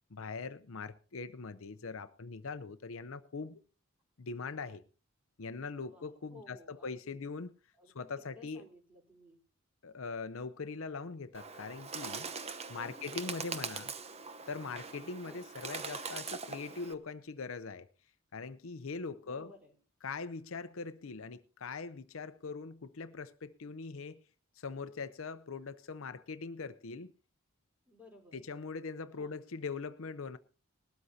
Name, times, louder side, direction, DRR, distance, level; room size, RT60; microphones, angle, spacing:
voice 1, 0.1-3.6 4.2-4.8 5.4-7.5 7.9-8.6 9.8-12.3 12.7-13.9 14.5-17.9 18.3-19.5 20.0-24.2 24.6-27.1 28.3-30.4, left 4 dB, 65° left, 0.7 m, -42 dB
voice 2, 5.8-7.2 7.7-9.4 12.8-13.1 15.2-15.4 19.2-19.7 27.9-28.4 29.2-29.3, left 2 dB, 5° right, 3.9 m, -57 dB
Bird, 11.3-16.9, right 5 dB, 30° right, 0.9 m, -42 dB
20.0 x 13.0 x 2.8 m
head